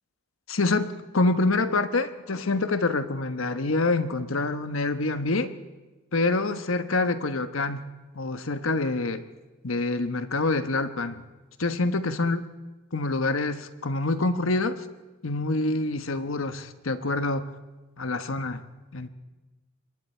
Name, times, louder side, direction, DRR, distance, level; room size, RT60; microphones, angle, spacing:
voice 1, 0.5-5.5 6.1-7.9 8.1-9.2 9.6-11.2 11.6-12.5 12.9-14.8 15.2-17.5 18.0-18.6 18.9-19.1, left 2 dB, 80° left, 10 dB, 1.2 m, -26 dB
26.0 x 22.0 x 4.5 m, 1.2 s
head